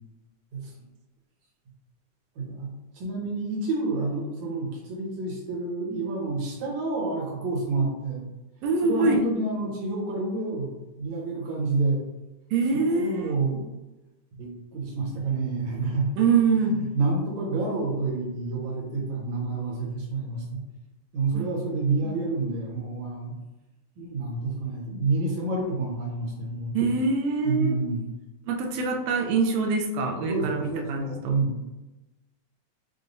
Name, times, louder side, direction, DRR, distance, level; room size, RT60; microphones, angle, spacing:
voice 1, 2.4-8.2 8.8-12.0 12.7-13.7 14.4-16.1 16.9-20.6 21.1-23.3 24.0-26.9 27.4-28.1 30.3-31.6, right 3 dB, 70° right, -3 dB, 2.2 m, -29 dB
voice 2, 8.6-9.2 12.5-13.3 16.2-16.8 21.3-21.5 22.1-22.2 26.7-27.7 28.5-31.4, right 4 dB, 85° right, 2 dB, 1.4 m, -24 dB
6.6 x 2.2 x 2.6 m, 1.0 s
omnidirectional pair, 3.5 m